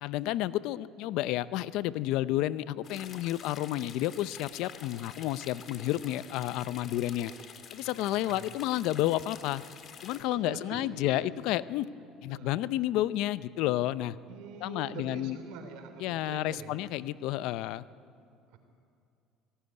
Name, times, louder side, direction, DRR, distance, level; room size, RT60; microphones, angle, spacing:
voice 1, 0.0-7.3 7.7-9.6 10.0-11.9 12.2-14.2 14.6-15.4 16.0-17.9, left 14 dB, 75° left, 17 dB, 0.6 m, -31 dB
sound 1, 2.8-10.2, left 7 dB, 45° left, 1.9 m, -48 dB
voice 2, 8.1-8.5 10.3-11.3 12.3-12.6 14.3-16.9 18.5-18.6, right 5 dB, 75° right, 6 dB, 3.4 m, -45 dB
22.5 x 17.0 x 9.6 m, 2.4 s
supercardioid pair, 100°, 0 cm